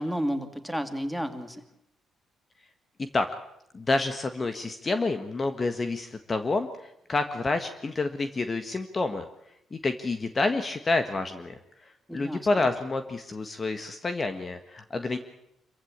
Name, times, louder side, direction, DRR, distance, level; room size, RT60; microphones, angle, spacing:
voice 1, 0.0-1.6 12.1-12.7, equal, ahead, 8 dB, 2.6 m, -32 dB
voice 2, 3.7-9.3 9.7-15.2, left 3 dB, 30° left, 8 dB, 1.6 m, -29 dB
26.0 x 15.0 x 8.8 m, 0.78 s
cardioid pair, 90°, 0 cm